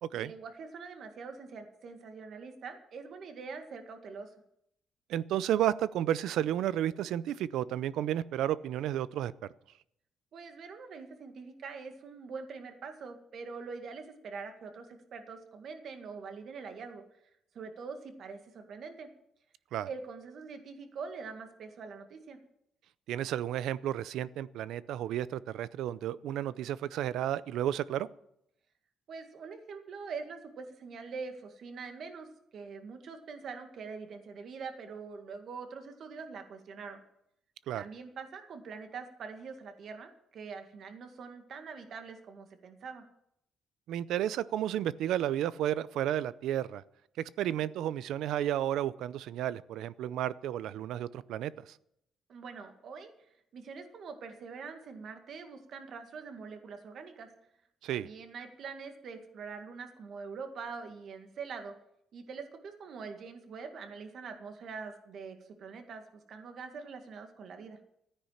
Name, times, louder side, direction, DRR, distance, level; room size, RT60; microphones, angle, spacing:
voice 1, 0.1-4.4 10.3-17.0 17.5-19.1 19.9-22.4 29.1-37.0 37.8-43.1 52.3-57.3 57.9-61.7 62.1-67.8, right 5 dB, 55° right, 6 dB, 2.0 m, -44 dB
voice 2, 5.1-9.3 19.7-19.9 23.1-28.1 37.7-37.8 43.9-46.8 47.2-51.7 57.8-58.1, right 11 dB, 85° right, 18 dB, 0.5 m, -32 dB
13.5 x 9.9 x 7.3 m, 0.77 s
cardioid pair, 145°, 0 cm